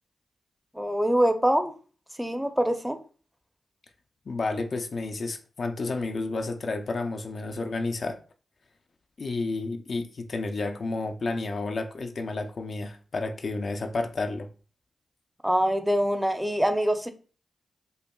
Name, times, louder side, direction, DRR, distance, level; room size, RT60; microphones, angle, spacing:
voice 1, 0.8-1.7 2.2-3.0 15.4-17.1, equal, 5° right, 0.6 m, -24 dB
voice 2, 4.3-8.2 9.2-14.5, left 3 dB, 60° left, 0.4 m, -31 dB
5.3 x 2.1 x 2.3 m
cardioid pair, 45°, 0 cm